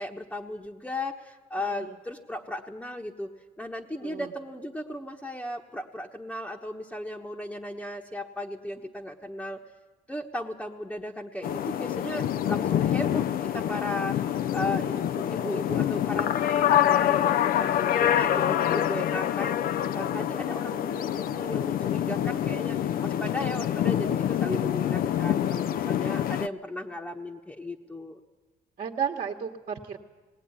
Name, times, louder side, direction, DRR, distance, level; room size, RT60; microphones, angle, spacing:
voice 1, 0.0-9.6 10.1-14.2 14.5-19.6 19.9-28.2, left 1 dB, 5° left, 0 dB, 1.2 m, -36 dB
sound 1, 11.4-26.5, left 10 dB, 60° left, 0.6 m, -26 dB
voice 2, 18.2-18.5 28.8-30.0, right 7 dB, 45° right, 1 dB, 1.6 m, -33 dB
19.0 x 18.5 x 9.7 m, 1.3 s
cardioid pair, 110°, 17 cm